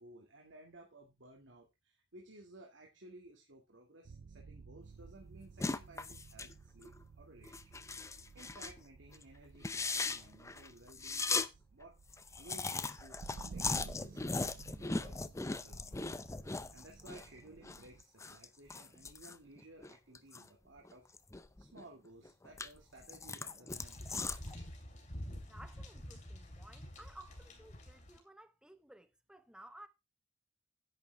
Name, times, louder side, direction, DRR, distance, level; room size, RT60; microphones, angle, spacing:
voice 1, 0.0-7.7 8.0-12.0 12.4-14.4 14.8-16.2 16.7-21.1 21.6-24.8, right 1 dB, 80° right, 2.2 m, -57 dB
sound 1, 4.0-18.0, right 4 dB, 65° right, 0.4 m, -54 dB
sound 2, 5.6-6.5 6.8-7.0 7.4-8.8 9.1-9.2 9.5-11.5 11.8-11.9 12.1-17.3 17.6-20.5 20.8-21.8 22.2-24.6, left 3 dB, 15° left, 0.6 m, -39 dB
sound 3, 23.7-28.2, equal, 40° left, 3.8 m, -48 dB
voice 2, 25.4-29.9, right 1 dB, 5° right, 1.0 m, -56 dB
10.5 x 9.5 x 3.4 m
head